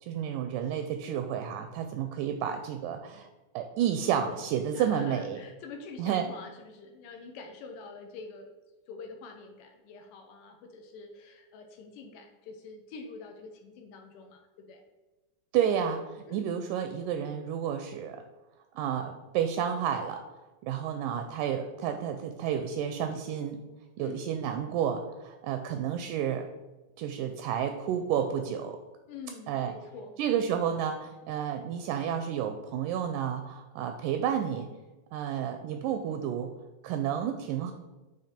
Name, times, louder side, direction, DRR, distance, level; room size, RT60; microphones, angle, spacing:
voice 1, 0.0-3.3 3.6-5.4 6.0-6.3 15.5-18.2 18.8-20.2 20.6-23.6 24.0-26.5 27.0-28.8 29.5-29.7 30.2-34.7 35.1-36.5 36.8-37.7, right 9 dB, 80° right, 7 dB, 1.9 m, -31 dB
voice 2, 4.7-8.5 8.9-14.9 16.3-16.5 24.0-24.2 29.1-30.2, left 4 dB, 80° left, 4 dB, 2.2 m, -45 dB
8.9 x 3.2 x 4.3 m, 1.1 s
omnidirectional pair, 4.0 m